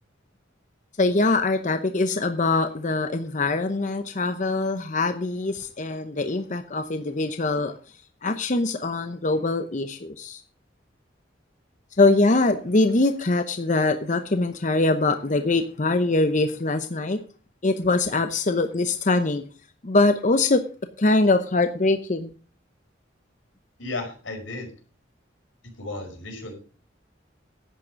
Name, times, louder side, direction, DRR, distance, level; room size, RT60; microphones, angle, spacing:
voice 1, 1.0-7.7 8.2-10.4 12.0-17.2 17.6-19.4 19.8-20.6 21.0-22.3, left 2 dB, 40° left, 9 dB, 0.8 m, -23 dB
voice 2, 23.8-24.7 25.8-26.5, left 2 dB, 90° left, 3 dB, 5.2 m, -34 dB
11.5 x 8.8 x 6.3 m, 0.39 s
head